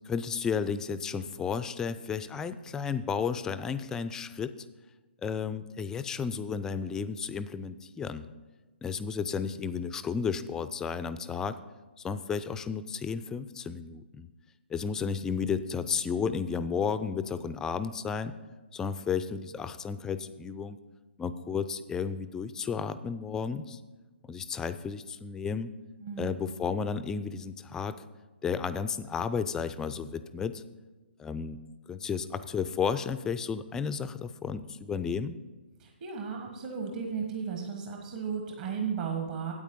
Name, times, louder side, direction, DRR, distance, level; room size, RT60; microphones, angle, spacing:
voice 1, 0.1-4.5 5.2-8.3 8.8-11.6 12.0-14.3 14.7-18.3 18.7-20.8 21.2-23.8 24.3-25.7 26.2-28.0 28.4-30.6 31.2-31.6 31.9-35.4, left 6 dB, 10° left, 13 dB, 0.3 m, -33 dB
voice 2, 26.0-26.5 35.8-39.5, right 6 dB, 45° right, 2 dB, 1.4 m, -35 dB
9.1 x 8.4 x 5.3 m, 1.2 s
figure-of-eight pair, 135°, 6 cm